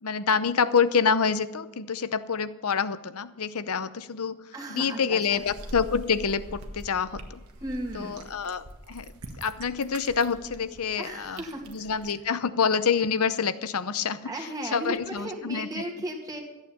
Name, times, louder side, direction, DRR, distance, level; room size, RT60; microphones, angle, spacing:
voice 1, 0.0-4.4 4.7-7.4 7.9-9.1 9.4-15.8, left 6 dB, 80° left, 14 dB, 0.7 m, -27 dB
voice 2, 4.5-5.2 7.6-8.2 11.0-11.9 14.2-16.4, right 1 dB, 15° right, -1 dB, 2.0 m, -35 dB
sound 1, 5.3-12.1, right 1 dB, 85° right, 1.5 m, -44 dB
14.0 x 9.0 x 7.0 m, 1.1 s
head